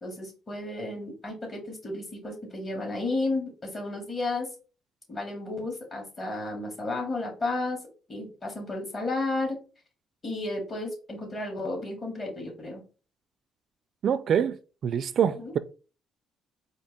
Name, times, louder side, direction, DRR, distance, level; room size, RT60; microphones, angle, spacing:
voice 1, 0.0-4.5 5.1-7.8 8.1-9.6 10.2-12.8 15.4-15.5, left 2 dB, 35° left, 2.1 m, -32 dB
voice 2, 14.0-15.6, right 8 dB, 55° right, 0.3 m, -26 dB
4.4 x 2.8 x 4.1 m
cardioid pair, 110°, 0 cm